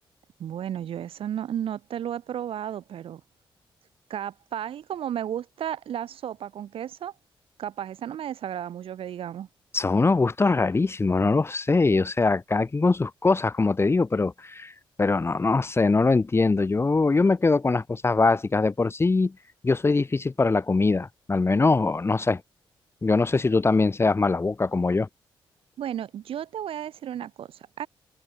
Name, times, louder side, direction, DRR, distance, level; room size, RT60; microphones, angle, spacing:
voice 1, 0.4-3.2 4.1-7.1 7.6-9.5 25.8-27.9, right 10 dB, 80° right, 7.5 m, -33 dB
voice 2, 9.7-14.7 15.0-19.3 19.6-22.4 23.0-25.1, left 3 dB, 25° left, 1.3 m, -22 dB
cardioid pair, 80°, 9 cm